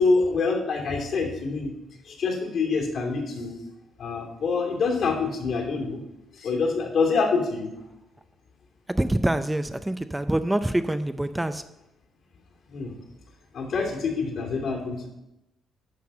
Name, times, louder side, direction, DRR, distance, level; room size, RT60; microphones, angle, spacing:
voice 1, 0.0-1.7 2.1-3.6 4.0-6.0 6.4-7.7 12.7-12.9 13.5-15.1, left 4 dB, 65° left, 1 dB, 2.8 m, -26 dB
voice 2, 9.0-11.6, right 1 dB, 10° right, 10 dB, 0.5 m, -25 dB
11.5 x 4.2 x 7.6 m, 0.89 s
cardioid pair, 90°, 0 cm